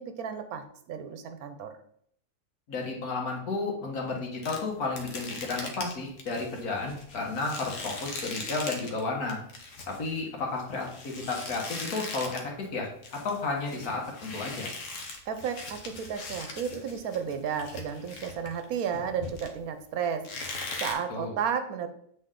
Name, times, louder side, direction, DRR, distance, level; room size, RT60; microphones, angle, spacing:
voice 1, 0.0-1.8 15.3-20.3 20.8-21.9, right 7 dB, 80° right, 8 dB, 1.2 m, -33 dB
voice 2, 2.7-9.4 9.9-14.7 21.1-21.3, left 3 dB, 85° left, 0 dB, 1.9 m, -32 dB
sound 1, 4.4-9.0 9.3-12.5 12.8-19.8 20.2-20.9, left 3 dB, 60° left, 1.3 m, -40 dB
7.8 x 4.0 x 3.7 m, 0.67 s
omnidirectional pair, 1.5 m